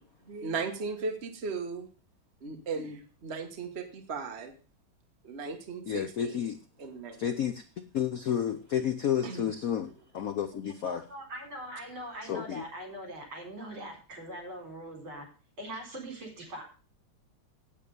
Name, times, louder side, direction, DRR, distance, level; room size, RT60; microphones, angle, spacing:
voice 1, 0.3-1.9 2.4-4.5 5.2-6.4 6.8-7.2 9.2-9.5, right 4 dB, 35° right, 4 dB, 1.4 m, -36 dB
voice 2, 5.9-6.6 7.2-11.0 12.2-12.6, left 9 dB, 75° left, 10 dB, 0.8 m, -31 dB
voice 3, 10.5-15.3 15.6-16.6, right 1 dB, 65° right, 2 dB, 5.1 m, -42 dB
8.8 x 8.6 x 6.8 m, 0.37 s
omnidirectional pair, 2.4 m